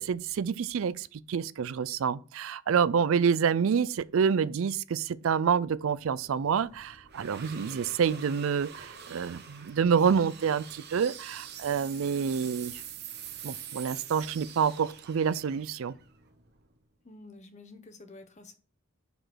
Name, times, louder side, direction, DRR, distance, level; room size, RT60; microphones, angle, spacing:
voice 1, 0.0-12.8 13.4-15.9, right 6 dB, 70° right, 0.4 m, -28 dB
sound 1, 5.6-16.8, right 8 dB, 50° right, 1.0 m, -46 dB
voice 2, 17.0-18.5, left 2 dB, 35° left, 1.0 m, -49 dB
6.1 x 5.2 x 6.2 m
head